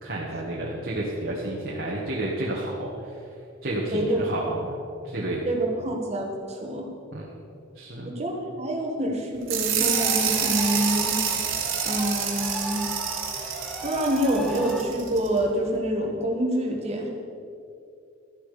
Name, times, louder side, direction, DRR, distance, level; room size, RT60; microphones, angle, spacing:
voice 1, 0.0-3.1 3.6-4.8 5.0-5.5 7.1-7.3 7.7-8.2, right 1 dB, 45° right, -4 dB, 1.6 m, -31 dB
voice 2, 3.9-4.6 5.5-6.8 8.1-11.2 11.9-12.9 13.8-17.1, right 1 dB, 30° right, 0 dB, 1.9 m, -27 dB
sound 1, 9.5-15.3, right 7 dB, 70° right, 2.1 m, -27 dB
sound 2, 9.8-14.8, equal, 5° left, 1.1 m, -36 dB
13.0 x 11.0 x 5.1 m, 2.5 s
head